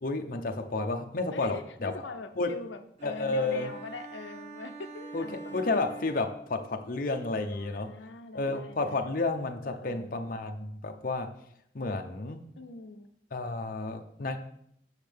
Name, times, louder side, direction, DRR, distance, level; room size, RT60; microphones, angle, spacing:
voice 1, 0.0-1.9 2.4-2.5 3.0-3.7 5.1-5.2 5.5-7.9 8.3-11.3 11.7-12.4 13.3-14.4, left 3 dB, 50° left, 4 dB, 0.7 m, -31 dB
voice 2, 1.3-5.8 7.5-9.1 9.6-10.2 12.6-13.1, left 4 dB, 85° left, 7 dB, 0.6 m, -43 dB
sound 1, 3.0-6.9, right 4 dB, 40° right, 1.7 m, -45 dB
8.2 x 6.4 x 3.5 m, 0.72 s
head